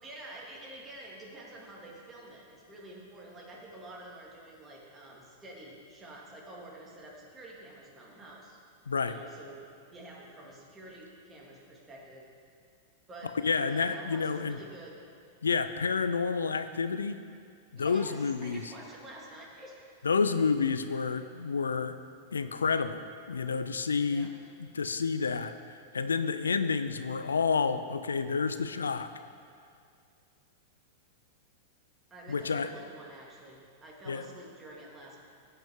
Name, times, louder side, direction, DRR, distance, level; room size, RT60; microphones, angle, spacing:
voice 1, 0.0-8.6 9.1-9.6 9.9-12.3 13.1-15.1 17.7-19.9 24.0-24.3 32.1-35.2, right 1 dB, 20° right, -3 dB, 2.2 m, -48 dB
voice 2, 13.4-14.6 15.4-17.2 17.7-18.7 20.0-22.0 22.3-24.3 24.6-29.1 32.3-32.7 34.1-34.3, left 5 dB, 85° left, 11 dB, 0.3 m, -29 dB
15.0 x 5.5 x 3.6 m, 2.3 s
hypercardioid pair, 100°, 0 cm